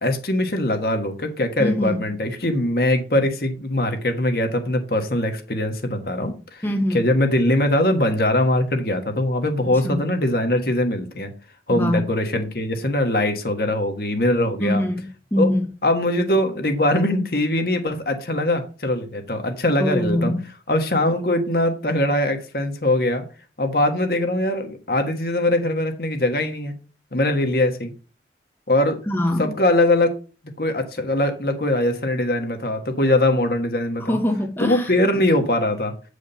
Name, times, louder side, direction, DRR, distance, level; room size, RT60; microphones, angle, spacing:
voice 1, 0.0-6.6 6.9-11.3 11.7-14.8 15.4-15.5 15.8-20.3 20.7-23.2 23.6-26.7 27.1-27.9 28.7-29.0 29.4-30.1 30.6-34.2 34.6-35.9, left 1 dB, 55° left, 1.4 m, -21 dB
voice 2, 1.6-2.0 6.6-7.0 9.7-10.0 11.7-12.1 14.6-15.6 19.8-20.4 29.1-29.5 34.0-34.9, left 1 dB, 10° left, 0.8 m, -23 dB
8.5 x 5.0 x 5.4 m
head